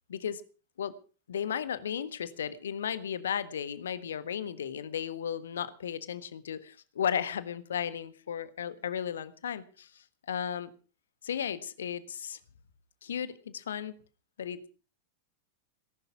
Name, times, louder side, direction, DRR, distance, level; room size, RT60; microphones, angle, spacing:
voice 1, 0.1-0.4 0.8-0.9 1.3-10.7 11.2-12.4 13.0-13.9 14.4-14.7, left 8 dB, 65° left, 14 dB, 1.5 m, -35 dB
18.5 x 11.5 x 6.0 m, 0.38 s
figure-of-eight pair, 90°, 0 cm